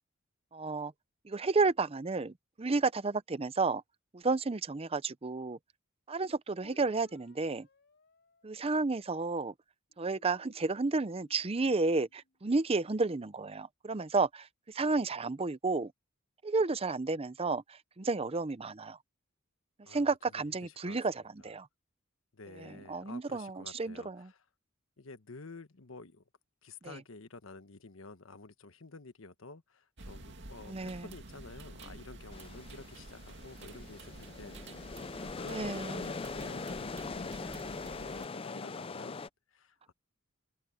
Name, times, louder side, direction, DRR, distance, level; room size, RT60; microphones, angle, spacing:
voice 1, 0.5-0.9 1.2-3.8 4.1-5.6 6.1-7.7 8.4-9.5 10.0-15.9 16.4-19.0 19.9-21.7 22.6-24.3 26.8-27.0 30.6-31.0 35.5-36.0, right 3 dB, 30° right, 0.6 m, -32 dB
sound 1, 6.6-9.3 9.9-12.4, left 1 dB, 60° left, 6.0 m, -64 dB
voice 2, 19.8-21.0 21.4-21.5 22.3-24.4 25.0-26.2 26.6-39.9, left 3 dB, 80° left, 1.2 m, -51 dB
sound 2, 30.0-38.3, right 2 dB, 60° right, 2.4 m, -50 dB
sound 3, 32.3-39.3, left 4 dB, 25° left, 0.5 m, -41 dB
head